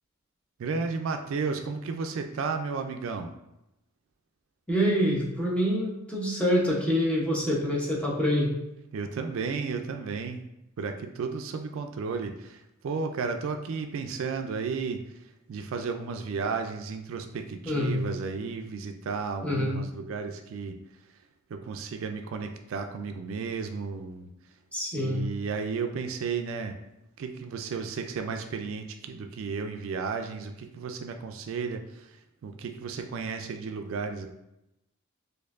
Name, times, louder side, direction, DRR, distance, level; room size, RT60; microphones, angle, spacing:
voice 1, 0.6-3.3 8.9-10.4 10.8-15.0 15.5-20.8 21.5-24.3 25.0-26.8 27.2-34.3, right 5 dB, 70° right, 6 dB, 0.3 m, -33 dB
voice 2, 4.7-8.5 17.6-18.1 19.4-19.8 24.7-25.2, equal, 5° left, -4 dB, 0.7 m, -26 dB
4.3 x 2.6 x 2.4 m, 0.88 s
head